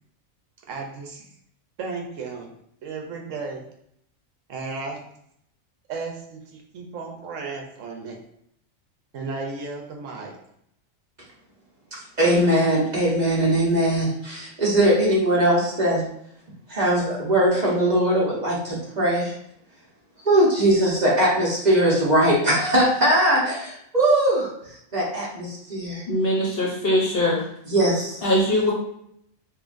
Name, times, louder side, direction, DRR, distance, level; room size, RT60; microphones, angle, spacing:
voice 1, 0.7-1.3 1.8-2.5 2.8-3.6 4.5-5.0 5.9-8.2 9.1-10.3, right 4 dB, 70° right, 1 dB, 1.0 m, -34 dB
voice 2, 11.9-16.0 16.7-19.3 20.2-24.5 24.9-26.0 27.6-28.2, right 1 dB, 35° right, -5 dB, 1.1 m, -20 dB
voice 3, 26.1-27.4 28.2-28.7, left 1 dB, 50° left, -3 dB, 1.0 m, -21 dB
5.4 x 2.5 x 2.6 m, 0.72 s
omnidirectional pair, 1.4 m